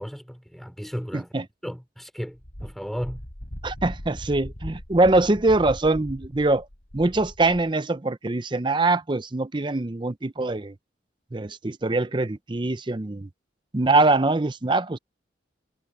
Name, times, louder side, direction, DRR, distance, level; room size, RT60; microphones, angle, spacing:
voice 1, 0.0-1.3 1.6-2.4 2.6-3.2, equal, ahead, 4.4 m, -34 dB
voice 2, 1.1-1.5 3.6-6.7 6.9-10.7 11.3-13.3 13.7-15.0, right 2 dB, 25° right, 0.6 m, -23 dB
Wind, 2.4-7.7, equal, 60° left, 4.1 m, -39 dB
head